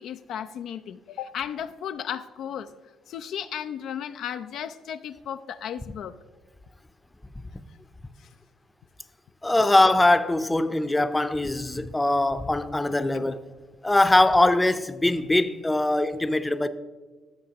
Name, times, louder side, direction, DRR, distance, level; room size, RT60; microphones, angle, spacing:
voice 1, 0.0-2.7 3.1-6.1 8.2-8.3, left 9 dB, 70° left, 0.4 m, -35 dB
voice 2, 9.4-13.5 13.8-16.7, left 2 dB, 15° left, 0.6 m, -22 dB
15.5 x 7.1 x 2.9 m
supercardioid pair, 60°, 0 cm